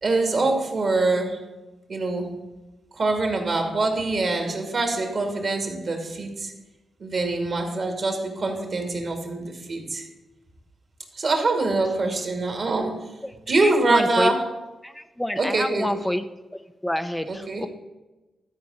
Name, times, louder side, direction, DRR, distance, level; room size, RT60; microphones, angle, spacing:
voice 1, 0.0-1.5 1.9-2.3 2.9-6.5 7.0-10.0 11.1-13.1 13.5-14.5 15.4-15.9 17.3-17.6, right 2 dB, 60° right, 3 dB, 2.4 m, -24 dB
voice 2, 13.6-14.3 14.8-16.3 16.8-17.7, left 1 dB, 10° left, 8 dB, 0.6 m, -27 dB
12.5 x 4.6 x 6.5 m, 1.1 s
supercardioid pair, 50°, 0 cm